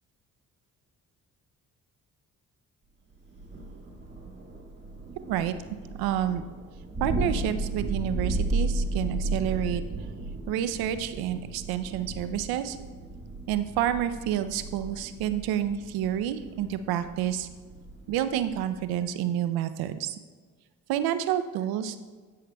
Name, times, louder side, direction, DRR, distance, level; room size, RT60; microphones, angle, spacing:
Thunder, 3.3-19.1, right 2 dB, 30° right, 1.7 m, -34 dB
voice 1, 5.9-6.4 7.0-9.8 10.5-12.8 13.5-17.5 18.1-20.2 20.9-22.0, right 10 dB, 85° right, 12 dB, 0.6 m, -29 dB
12.5 x 6.5 x 2.3 m, 1.5 s
supercardioid pair, 65°, 36 cm